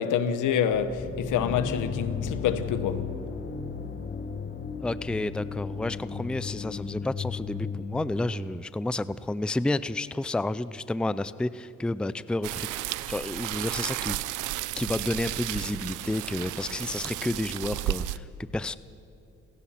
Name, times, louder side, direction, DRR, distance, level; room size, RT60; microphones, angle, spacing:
voice 1, 0.0-3.1, left 8 dB, 85° left, 1.3 m, -27 dB
sound 1, 0.7-8.6, left 6 dB, 40° left, 1.6 m, -35 dB
voice 2, 4.8-14.2 14.8-18.8, left 2 dB, 5° left, 0.5 m, -31 dB
sound 2, 12.4-18.2, right 15 dB, 90° right, 0.6 m, -33 dB
28.5 x 16.0 x 5.8 m
cardioid pair, 90°, 30 cm